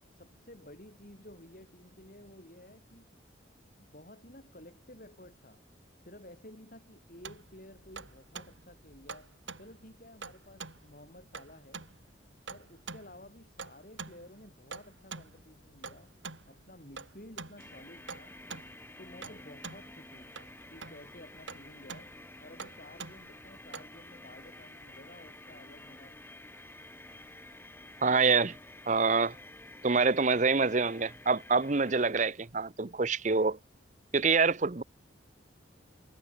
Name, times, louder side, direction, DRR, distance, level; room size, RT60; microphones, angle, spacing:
voice 1, 0.1-3.1 3.8-5.6 6.0-11.8 12.5-16.2 16.5-18.4 19.0-20.3 20.7-22.1 22.4-26.2, left 1 dB, 45° left, 8.0 m, -53 dB
sound 1, 7.1-23.8, right 4 dB, 75° right, 4.3 m, -46 dB
sound 2, 17.6-32.1, left 1 dB, 10° left, 4.6 m, -51 dB
voice 2, 28.0-28.6 28.9-29.3 29.8-33.6 34.1-34.8, right 4 dB, 40° right, 0.8 m, -26 dB
head